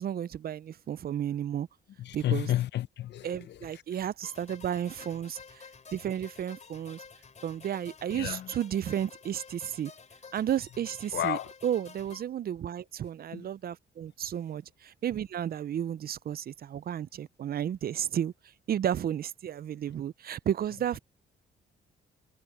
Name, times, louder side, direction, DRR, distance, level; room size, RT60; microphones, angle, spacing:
voice 1, 0.0-1.7 2.1-2.5 3.2-5.4 5.9-7.0 7.4-9.9 10.3-18.3 18.7-21.0, right 10 dB, 50° right, 0.5 m, -32 dB
voice 2, 2.0-3.6 8.1-8.5 11.1-11.5 13.3-13.5, left 13 dB, 60° left, 0.6 m, -31 dB
sound 1, 4.2-12.2, left 5 dB, 35° left, 3.9 m, -51 dB
cardioid pair, 90°, 20 cm